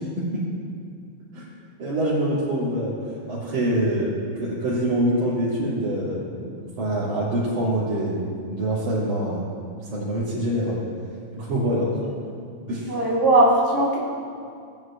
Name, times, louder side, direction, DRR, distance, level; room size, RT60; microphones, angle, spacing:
voice 1, 1.8-2.9 3.3-9.4 9.9-10.8 11.3-12.0 12.7-12.9, right 1 dB, 70° right, -13 dB, 3.8 m, -25 dB
voice 2, 12.9-14.0, right 1 dB, 15° left, -6 dB, 0.6 m, -18 dB
18.5 x 9.5 x 2.4 m, 2.3 s
omnidirectional pair, 3.6 m